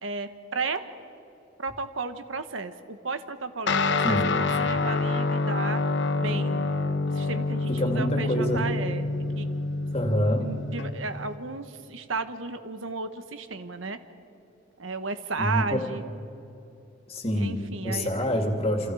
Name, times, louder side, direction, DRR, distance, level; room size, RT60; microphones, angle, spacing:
voice 1, 0.0-0.8 1.6-5.8 6.1-6.7 7.1-9.1 9.4-9.5 10.4-14.0 14.8-16.0 17.4-18.3, right 4 dB, 80° right, 9 dB, 1.3 m, -34 dB
Guitar, 3.7-11.4, left 3 dB, 60° left, 1.0 m, -27 dB
voice 2, 4.0-4.4 7.7-8.7 9.9-10.5 15.4-15.8 17.1-18.9, equal, 30° left, 3 dB, 2.6 m, -27 dB
29.0 x 27.5 x 4.9 m, 2.7 s
head